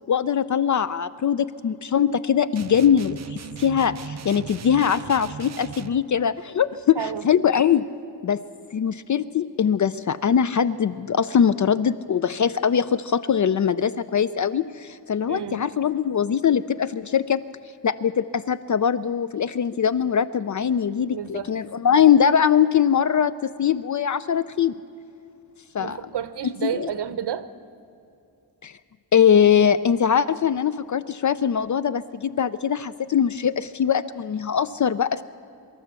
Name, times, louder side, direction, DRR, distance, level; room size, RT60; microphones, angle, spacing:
voice 1, 0.1-7.8 8.2-8.4 8.7-17.4 17.8-24.7 25.7-26.0 26.4-26.9 28.6-28.8 29.1-35.2, left 8 dB, 45° left, 15 dB, 0.5 m, -22 dB
sound 1, 2.6-6.0, right 7 dB, 40° right, 0.5 m, -38 dB
voice 2, 15.3-15.6 21.1-21.5 25.8-27.5, right 9 dB, 75° right, 13 dB, 1.0 m, -30 dB
24.5 x 13.0 x 8.1 m, 2.7 s
wide cardioid pair, 160°, 41 cm